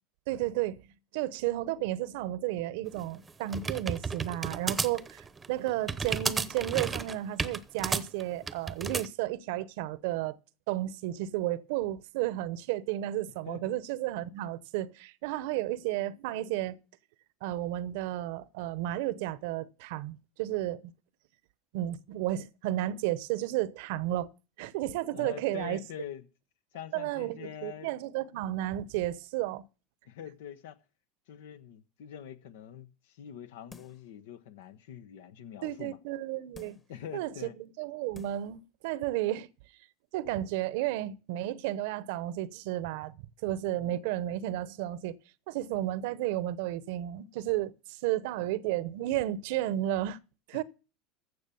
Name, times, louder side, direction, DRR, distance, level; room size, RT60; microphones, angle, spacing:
voice 1, 0.3-0.9 1.1-10.4 10.7-16.8 17.4-20.9 21.7-24.3 24.6-25.8 26.9-29.6 35.6-36.8 37.1-39.5 40.1-45.2 45.5-50.2 50.5-50.6, right 14 dB, 70° right, 0.8 m, -33 dB
sound 1, 2.9-9.1, right 4 dB, 20° right, 0.8 m, -33 dB
voice 2, 13.5-13.8 25.1-26.2 26.7-27.9 30.1-30.8 31.3-36.0 36.6-37.6 43.8-44.3 50.5-50.6, left 9 dB, 80° left, 1.0 m, -44 dB
sound 2, 33.7-34.1 34.6-34.7 36.5-37.0 37.7-37.8 38.1-38.5 38.9-39.0, left 4 dB, 25° left, 1.5 m, -52 dB
15.0 x 6.1 x 7.0 m
supercardioid pair, 105°, 0 cm